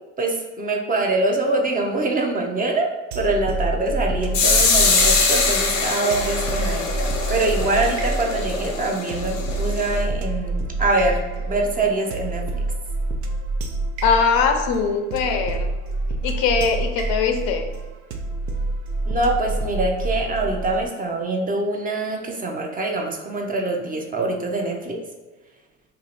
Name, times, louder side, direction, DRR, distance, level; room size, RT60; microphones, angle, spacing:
voice 1, 0.2-2.9 3.1-12.6 19.1-25.0, right 2 dB, 25° right, 2 dB, 0.5 m, -24 dB
sound 1, 3.1-20.9, right 2 dB, 70° right, 0.6 m, -27 dB
sound 2, 4.3-10.0, left 4 dB, 90° left, 0.9 m, -22 dB
voice 2, 14.0-15.7 16.2-17.6, left 5 dB, 65° left, 5 dB, 0.6 m, -21 dB
2.8 x 2.4 x 4.1 m, 1.2 s
hypercardioid pair, 80°, 37 cm